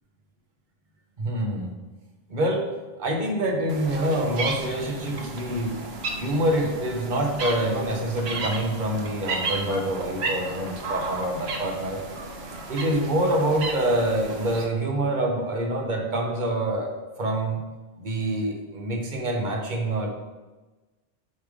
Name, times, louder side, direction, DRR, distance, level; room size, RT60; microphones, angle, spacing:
voice 1, 1.2-1.7 2.3-2.7 3.0-5.8 6.2-12.0 12.7-17.6 18.0-20.1, right 1 dB, 50° right, 1 dB, 1.2 m, -26 dB
sound 1, 3.7-14.6, right 3 dB, 85° right, 1.1 m, -33 dB
8.4 x 3.4 x 5.0 m, 1.2 s
omnidirectional pair, 1.0 m